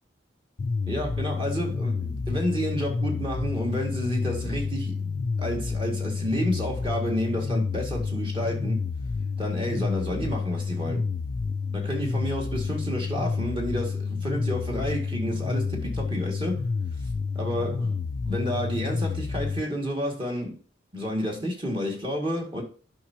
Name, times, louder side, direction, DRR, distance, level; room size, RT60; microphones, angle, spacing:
sound 1, 0.6-19.6, left 4 dB, 45° left, 0.4 m, -29 dB
voice 1, 0.9-5.1 5.4-8.8 9.4-11.1 11.7-16.6 17.3-18.0 18.2-20.5 20.9-22.6, equal, 25° right, 2.1 m, -30 dB
11.5 x 5.6 x 2.9 m
head